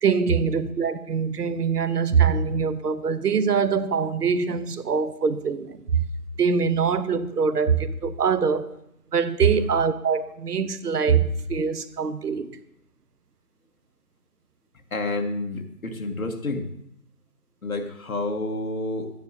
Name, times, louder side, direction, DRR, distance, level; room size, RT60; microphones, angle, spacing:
voice 1, 0.0-6.0 6.4-8.7 9.1-12.5, right 6 dB, 85° right, 0.9 m, -23 dB
voice 2, 14.9-16.7 17.6-19.1, left 2 dB, 60° left, 1.3 m, -29 dB
12.0 x 9.3 x 2.7 m
figure-of-eight pair, 175°, 46 cm